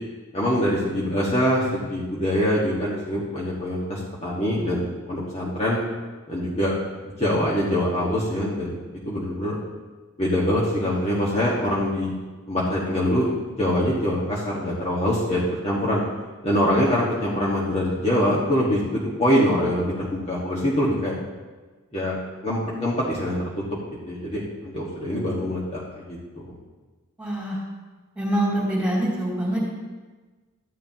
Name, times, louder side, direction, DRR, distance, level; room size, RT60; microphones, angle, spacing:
voice 1, 0.3-5.8 6.3-6.7 7.2-8.8 9.0-9.6 10.2-12.1 12.5-13.3 13.6-16.0 16.4-21.1 21.9-23.4 24.1-26.6, equal, 30° left, -6 dB, 1.4 m, -24 dB
voice 2, 27.2-27.6 28.1-29.6, right 1 dB, 5° right, -5 dB, 2.7 m, -24 dB
13.5 x 10.0 x 2.9 m, 1.3 s
head